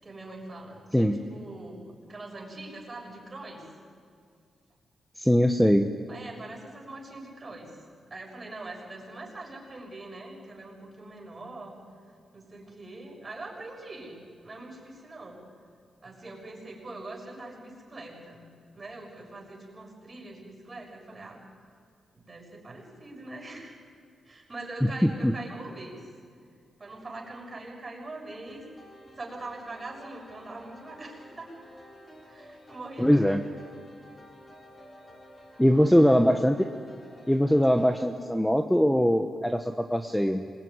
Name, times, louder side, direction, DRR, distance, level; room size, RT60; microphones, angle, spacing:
voice 1, 0.0-3.7 6.1-7.7 8.1-11.8 12.3-15.4 16.0-18.4 18.7-21.4 22.1-23.8 24.2-26.1 26.8-28.6 29.2-31.5 32.3-33.5 35.6-36.4, right 2 dB, 25° right, 0 dB, 6.8 m, -43 dB
voice 2, 5.2-5.9 24.8-25.3 33.0-33.4 35.6-36.6 37.3-40.5, equal, 5° left, 6 dB, 1.1 m, -22 dB
sound 1, 28.5-38.1, left 1 dB, 25° left, 7.0 m, -52 dB
26.5 x 22.0 x 9.7 m, 2.2 s
cardioid pair, 105°, 0 cm